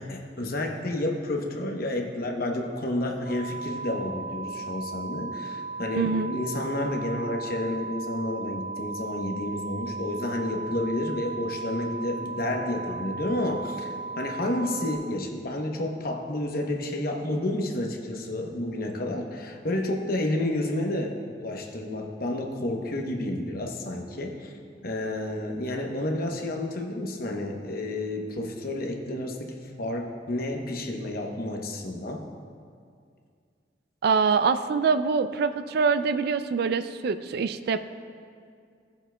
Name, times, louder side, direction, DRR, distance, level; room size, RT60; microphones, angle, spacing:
voice 1, 0.0-24.5 24.8-32.2, left 1 dB, 55° left, 2 dB, 0.9 m, -30 dB
sound 1, 3.2-14.9, right 4 dB, 35° left, 2.0 m, -36 dB
voice 2, 5.9-6.4 34.0-37.8, right 5 dB, 60° right, 11 dB, 0.3 m, -24 dB
16.0 x 7.1 x 2.3 m, 2.2 s
head